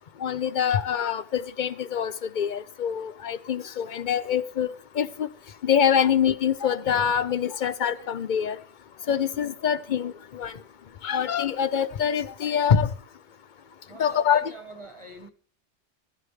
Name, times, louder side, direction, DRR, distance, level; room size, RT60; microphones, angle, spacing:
voice 1, 0.2-4.7 4.9-5.3 5.6-8.6 9.1-10.5 11.0-12.9 14.0-14.5, left 8 dB, 50° left, 0.7 m, -25 dB
voice 2, 13.9-15.3, right 2 dB, 25° right, 1.4 m, -45 dB
16.0 x 11.0 x 3.2 m
omnidirectional pair, 1.2 m